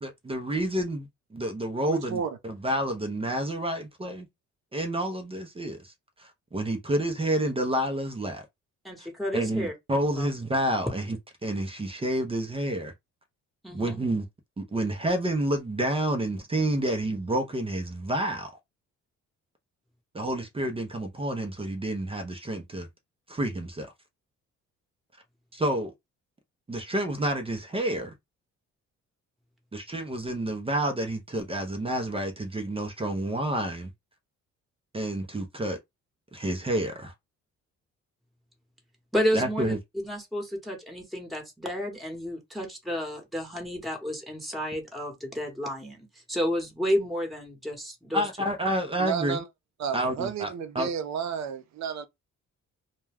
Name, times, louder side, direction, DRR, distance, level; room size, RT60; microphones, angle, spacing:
voice 1, 0.0-4.3 4.7-5.9 6.2-8.5 9.0-9.1 9.3-12.9 13.7-14.3 14.6-18.6 20.1-22.9 23.3-23.9 25.5-25.9 26.7-28.1 29.7-33.9 34.9-35.8 36.3-37.1 39.3-39.8 48.1-49.4 49.9-50.9, right 1 dB, 20° right, 0.6 m, -29 dB
voice 2, 1.9-2.3 49.0-49.4 49.8-52.1, right 7 dB, 65° right, 0.6 m, -31 dB
voice 3, 8.8-9.7 10.2-10.3 13.6-14.0 39.1-39.8 40.0-48.2, equal, ahead, 1.0 m, -31 dB
2.2 x 2.2 x 3.3 m
cardioid pair, 90°, 30 cm